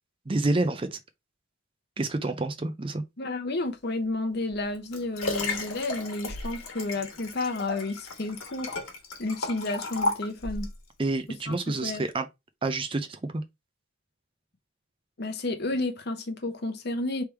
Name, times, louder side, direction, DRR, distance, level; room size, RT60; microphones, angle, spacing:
voice 1, 0.3-1.0 2.0-3.0 11.0-12.3 12.6-13.4, right 2 dB, 25° right, 0.5 m, -28 dB
voice 2, 3.2-8.7 9.2-10.7 11.5-11.6 11.8-12.0 15.2-17.2, left 2 dB, 50° left, 0.8 m, -31 dB
Liquid, 4.5-10.8 11.4-11.5, left 2 dB, 85° left, 1.4 m, -34 dB
3.4 x 3.2 x 4.4 m
head